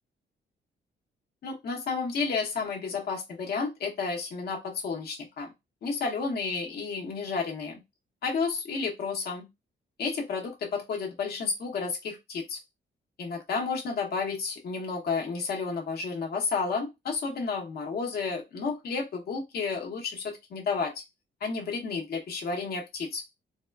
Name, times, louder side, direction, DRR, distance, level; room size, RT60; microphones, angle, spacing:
voice 1, 1.4-5.5 5.8-7.8 8.2-9.4 10.0-12.6 13.2-20.9 21.4-23.2, left 4 dB, 55° left, 0 dB, 0.8 m, -31 dB
3.5 x 2.2 x 2.2 m, 0.21 s
wide cardioid pair, 165°, 20 cm